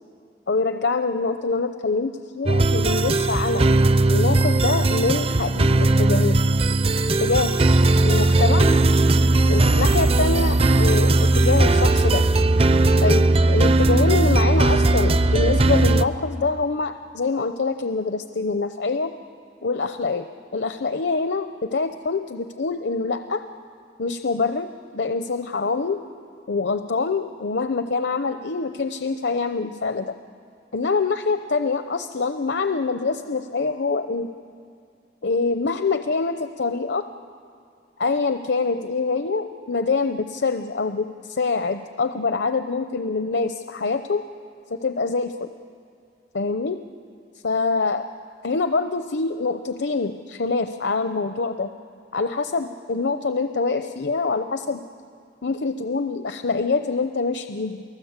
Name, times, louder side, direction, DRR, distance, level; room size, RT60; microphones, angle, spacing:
voice 1, 0.5-3.7 4.1-6.4 7.2-7.6 8.0-8.7 9.5-12.2 13.0-19.1 19.6-20.3 20.5-23.4 24.0-26.0 26.5-30.2 30.7-34.3 35.2-37.1 38.0-44.2 44.7-45.5 46.3-46.8 47.4-48.1 48.4-51.7 52.1-54.8 55.4-57.8, left 4 dB, 65° left, 8 dB, 0.7 m, -25 dB
sound 1, 2.5-16.1, right 2 dB, 30° right, 0.6 m, -18 dB
29.5 x 19.0 x 8.1 m, 2.5 s
head